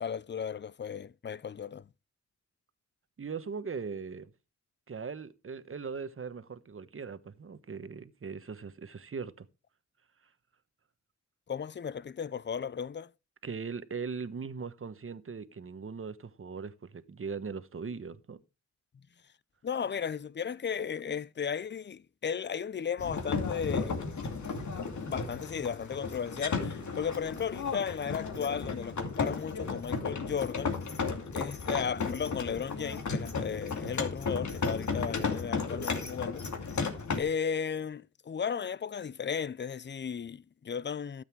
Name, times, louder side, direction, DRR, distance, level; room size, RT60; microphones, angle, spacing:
voice 1, 0.0-1.8 11.5-13.1 19.6-24.0 25.1-30.8 31.3-36.5 37.2-41.2, left 7 dB, 40° left, 0.5 m, -35 dB
voice 2, 3.2-4.3 4.9-9.5 13.4-18.4, right 5 dB, 45° right, 1.1 m, -39 dB
sound 1, 23.0-37.2, left 4 dB, 75° left, 2.6 m, -34 dB
13.0 x 8.1 x 4.6 m
cardioid pair, 70°, 29 cm